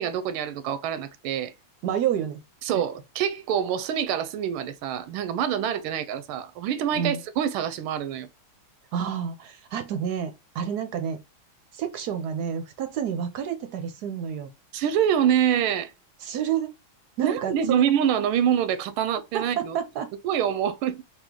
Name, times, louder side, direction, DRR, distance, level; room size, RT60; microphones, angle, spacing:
voice 1, 0.0-1.5 2.6-8.3 14.7-15.9 17.2-19.8 20.2-21.0, right 9 dB, 85° right, 1.5 m, -25 dB
voice 2, 1.8-2.4 6.9-7.2 8.9-11.2 11.7-14.5 16.2-16.7 17.2-17.8 19.3-20.1, right 8 dB, 70° right, 1.0 m, -29 dB
4.2 x 2.4 x 3.6 m
omnidirectional pair, 2.3 m